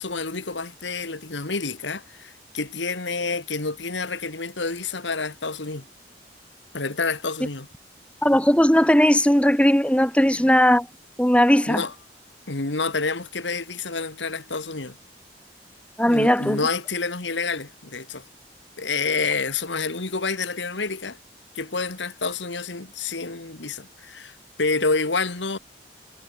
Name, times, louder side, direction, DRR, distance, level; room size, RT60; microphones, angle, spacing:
voice 1, 0.0-5.9 6.7-7.7 11.7-11.9 12.5-15.0 16.1-18.3 18.8-21.2 21.5-25.6, left 4 dB, 85° left, 2.1 m, -28 dB
voice 2, 8.2-10.9 11.2-11.8 16.0-16.6, equal, 5° left, 1.5 m, -18 dB
head